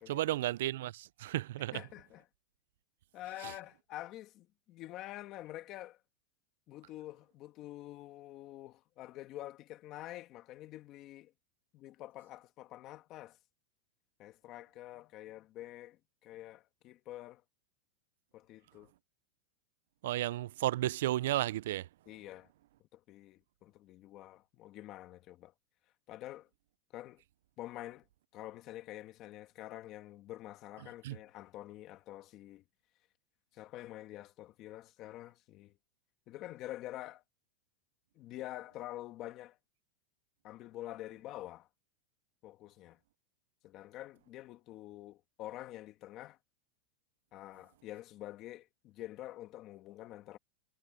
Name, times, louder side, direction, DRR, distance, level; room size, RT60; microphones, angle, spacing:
voice 1, 0.1-1.8 3.4-3.5 20.0-21.9 31.0-31.2, right 15 dB, 70° right, 0.4 m, -33 dB
voice 2, 1.7-2.2 3.1-6.0 6.7-11.3 11.7-13.4 14.2-17.4 18.3-18.9 22.1-22.5 22.9-25.5 26.1-26.5 26.9-27.2 27.6-28.1 28.3-32.6 33.5-35.7 36.3-37.2 38.2-39.6 40.4-41.7 42.4-43.0 43.6-46.4 47.3-50.4, left 15 dB, 35° left, 1.6 m, -47 dB
supercardioid pair, 155°, 0 cm